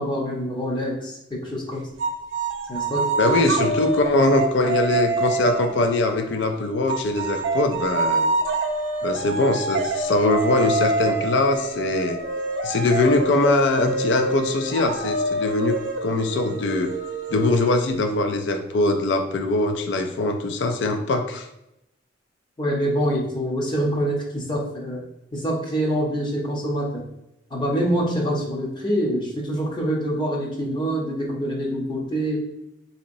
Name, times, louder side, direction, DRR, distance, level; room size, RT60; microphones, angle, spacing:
voice 1, 0.0-1.8 2.7-3.0 22.6-25.1 25.3-27.0 27.5-32.4, equal, 25° left, -2 dB, 0.7 m, -25 dB
happy bird, 2.0-6.3 6.9-18.2, right 3 dB, 70° right, 0.4 m, -26 dB
voice 2, 3.2-8.3 9.0-12.2 12.6-16.9 17.3-21.5, left 2 dB, 65° left, 5 dB, 0.4 m, -22 dB
Trumpet, 10.2-17.6, left 1 dB, 45° left, 1.0 m, -41 dB
3.9 x 2.8 x 2.6 m, 0.85 s
head